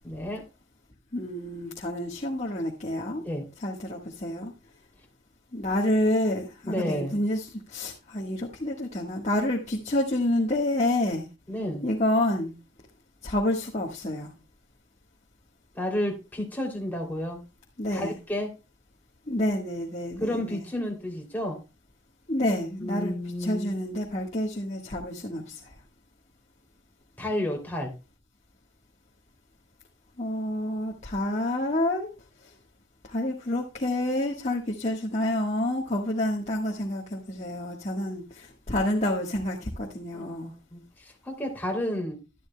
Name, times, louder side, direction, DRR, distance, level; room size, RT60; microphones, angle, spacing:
voice 1, 0.0-0.4 3.2-3.5 6.6-7.2 11.5-11.9 15.7-17.4 17.9-18.5 20.2-21.6 22.8-23.7 27.2-27.9 40.1-42.2, left 1 dB, 10° left, 0 dB, 2.9 m, -31 dB
voice 2, 1.1-3.2 3.6-4.5 5.5-11.3 11.8-12.5 13.2-14.3 17.8-18.1 19.3-20.6 22.3-25.7 30.2-32.1 33.0-40.5, left 1 dB, 35° left, -2 dB, 1.4 m, -28 dB
12.0 x 11.5 x 2.2 m, 0.28 s
head